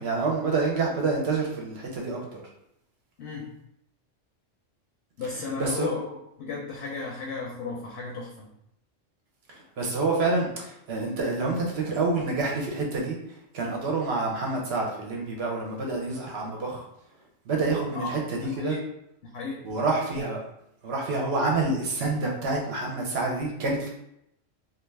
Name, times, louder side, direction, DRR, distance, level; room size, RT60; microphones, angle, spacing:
voice 1, 0.0-2.4 5.6-5.9 9.8-13.2 13.5-16.9 17.5-18.8 19.6-20.4 20.8-23.9, right 3 dB, 65° right, -1 dB, 0.8 m, -27 dB
voice 2, 5.2-8.5 17.9-18.1 18.5-18.8 19.3-19.6, left 4 dB, 65° left, -2 dB, 0.8 m, -34 dB
2.3 x 2.3 x 3.2 m, 0.78 s
omnidirectional pair, 1.3 m